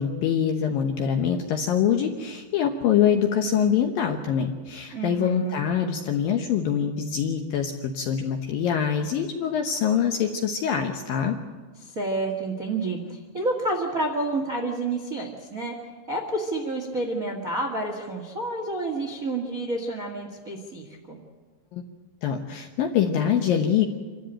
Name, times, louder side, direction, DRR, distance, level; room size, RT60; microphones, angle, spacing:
voice 1, 0.0-11.4 21.7-21.8 22.2-23.9, left 8 dB, 70° left, 4 dB, 2.2 m, -24 dB
voice 2, 4.9-5.6 11.8-15.7 16.1-21.2, right 2 dB, 50° right, 2 dB, 0.9 m, -29 dB
26.5 x 13.0 x 9.0 m, 1.4 s
omnidirectional pair, 5.3 m